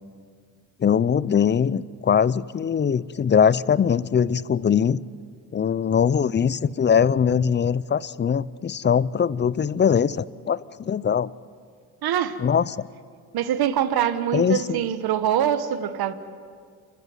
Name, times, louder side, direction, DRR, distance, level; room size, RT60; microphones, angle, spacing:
voice 1, 0.8-5.0 5.5-11.3 12.4-12.8 14.3-14.8, left 7 dB, 25° left, 0.6 m, -21 dB
voice 2, 12.0-12.4 13.3-16.1, right 10 dB, 60° right, 1.4 m, -24 dB
28.0 x 14.0 x 9.4 m
supercardioid pair, 80°, 41 cm